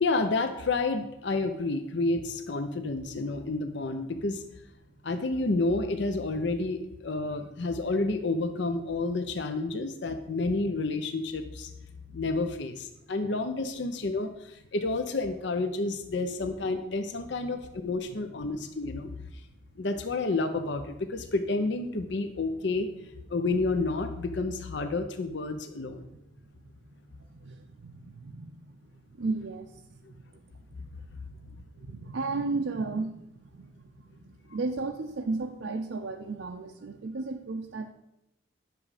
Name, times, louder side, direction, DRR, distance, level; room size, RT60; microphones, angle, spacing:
voice 1, 0.0-4.4 5.0-11.7 12.1-19.1 19.8-22.9 23.3-26.0 30.8-30.9, left 3 dB, 60° left, 7 dB, 0.6 m, -30 dB
voice 2, 26.1-26.5 26.8-26.9 27.3-37.9, right 3 dB, 70° right, 3 dB, 0.5 m, -36 dB
9.5 x 6.1 x 4.9 m, 0.87 s
head